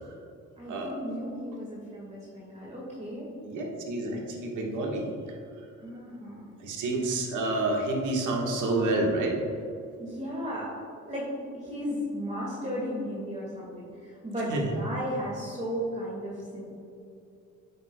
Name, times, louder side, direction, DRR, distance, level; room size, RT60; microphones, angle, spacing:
voice 1, 0.6-3.3 5.8-6.5 10.0-10.7 11.1-16.6, equal, 25° right, -5 dB, 1.7 m, -35 dB
voice 2, 3.4-5.1 6.6-9.4 14.5-14.6, right 2 dB, 80° right, 0 dB, 1.4 m, -29 dB
9.5 x 7.3 x 2.2 m, 2.6 s
cardioid pair, 90°, 30 cm